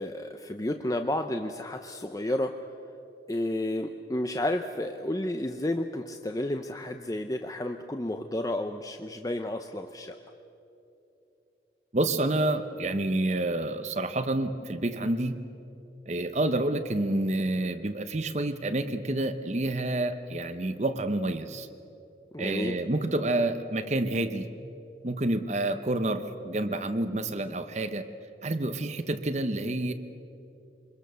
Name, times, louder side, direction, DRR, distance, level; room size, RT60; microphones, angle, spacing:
voice 1, 0.0-2.6 3.3-10.2 22.3-22.8, left 1 dB, 20° left, 6 dB, 0.6 m, -31 dB
voice 2, 11.9-15.4 16.1-21.7 22.4-24.5 25.0-28.1 28.4-29.9, right 2 dB, 40° right, 9 dB, 0.8 m, -28 dB
26.0 x 22.0 x 6.8 m, 2.9 s
head